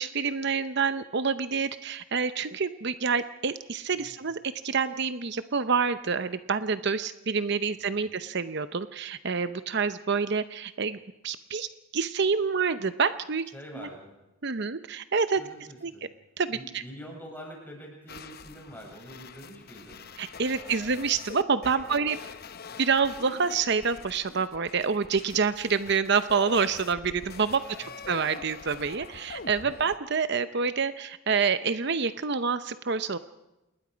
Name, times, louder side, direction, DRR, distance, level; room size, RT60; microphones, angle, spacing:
voice 1, 0.0-4.4 4.6-11.0 11.2-11.7 11.9-13.4 13.8-13.9 14.4-15.4 15.8-15.9 16.4-16.8 20.2-22.2 22.8-33.2, right 5 dB, 55° right, 12 dB, 0.7 m, -27 dB
voice 2, 7.8-8.1 13.5-14.1 15.4-16.1 16.5-20.0 20.6-21.0 21.8-22.1 27.6-28.1 29.4-29.7, equal, 10° left, -1 dB, 7.5 m, -46 dB
sound 1, 18.1-30.0, left 4 dB, 45° left, 0.9 m, -44 dB
28.0 x 20.5 x 5.1 m, 0.96 s
head